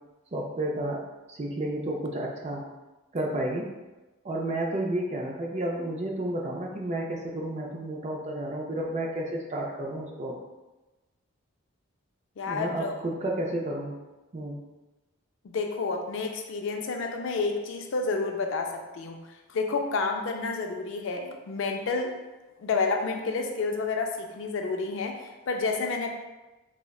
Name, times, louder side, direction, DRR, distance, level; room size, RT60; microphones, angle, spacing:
voice 1, 0.3-1.0 1.3-2.6 3.1-3.7 4.2-10.4 12.5-14.0 14.3-14.6, right 1 dB, 30° right, -1 dB, 0.4 m, -31 dB
voice 2, 12.4-12.9 15.4-19.2 19.5-22.1 22.6-26.1, left 4 dB, 60° left, 3 dB, 0.3 m, -30 dB
3.7 x 2.1 x 2.3 m, 1.1 s
head